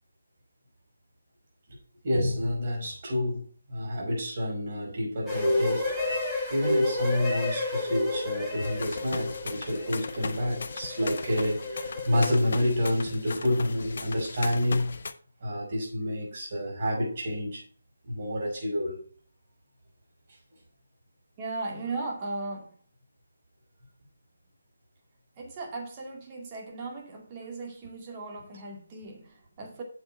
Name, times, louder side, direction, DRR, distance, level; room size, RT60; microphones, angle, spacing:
voice 1, 2.0-6.0 6.5-14.9 15.4-17.6 18.0-19.0, left 1 dB, 45° right, 5.4 m, -29 dB
sound 1, 5.3-12.4, left 2 dB, ahead, 3.3 m, -30 dB
sound 2, 8.6-15.1, left 4 dB, 55° left, 0.8 m, -38 dB
voice 2, 21.4-22.7 25.4-29.8, right 3 dB, 25° right, 2.3 m, -37 dB
7.8 x 7.2 x 4.5 m
figure-of-eight pair, 155°, 0 cm